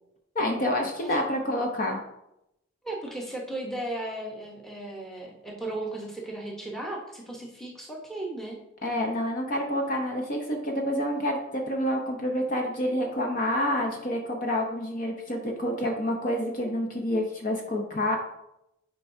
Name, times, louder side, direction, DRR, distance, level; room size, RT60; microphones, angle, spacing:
voice 1, 0.3-2.0 8.8-18.2, left 1 dB, 40° left, 2 dB, 0.8 m, -28 dB
voice 2, 2.8-8.6, right 1 dB, ahead, -2 dB, 1.0 m, -36 dB
9.8 x 4.6 x 2.7 m, 0.84 s
head